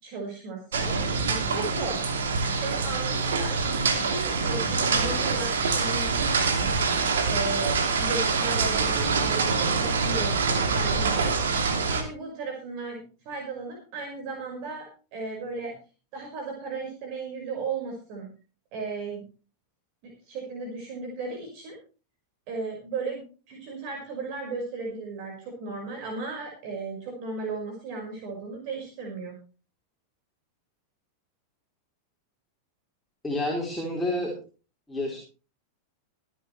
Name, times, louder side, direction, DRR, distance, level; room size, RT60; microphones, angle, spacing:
voice 1, 0.0-0.9 1.3-2.0 2.6-6.1 7.0-11.3 11.9-15.7 16.1-18.3 18.7-19.3 20.0-21.8 22.5-29.3, right 3 dB, 45° right, 0 dB, 5.2 m, -35 dB
sound 1, 0.7-12.0, right 4 dB, 65° right, 2.5 m, -25 dB
voice 2, 33.2-34.3 34.9-35.2, left 1 dB, 10° left, -3 dB, 4.3 m, -29 dB
24.0 x 9.0 x 3.3 m, 0.36 s
figure-of-eight pair, 90°, 0 cm